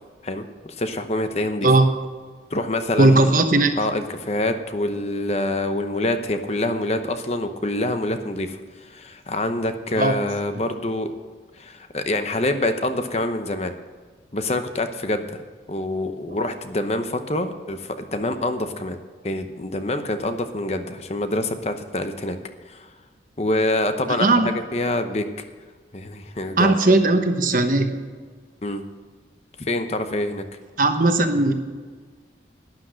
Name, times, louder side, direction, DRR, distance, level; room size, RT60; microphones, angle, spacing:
voice 1, 0.2-1.7 2.5-3.3 3.8-11.1 11.6-13.7 14.3-15.3 15.7-19.0 19.2-22.4 22.7-22.9 23.4-25.2 25.9-27.0 28.6-28.8 29.6-30.4, left 1 dB, 35° left, 8 dB, 0.8 m, -26 dB
voice 2, 3.0-3.7 10.0-10.1 24.2-24.5 26.6-27.9 30.8-31.5, right 2 dB, 50° right, 7 dB, 1.1 m, -17 dB
12.0 x 10.5 x 6.3 m, 1.5 s
head